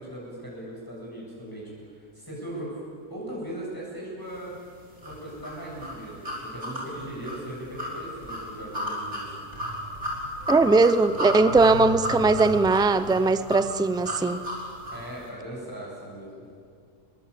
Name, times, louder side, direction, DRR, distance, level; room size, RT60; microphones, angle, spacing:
voice 1, 0.0-2.8 3.1-4.6 5.0-9.5 14.9-16.4, right 1 dB, 10° left, -5 dB, 8.1 m, -38 dB
sound 1, 5.0-15.1, equal, 40° right, 6.1 m, -33 dB
voice 2, 10.5-14.4, right 3 dB, 5° right, 12 dB, 0.4 m, -20 dB
29.5 x 23.0 x 8.7 m, 2.2 s
omnidirectional pair, 1.7 m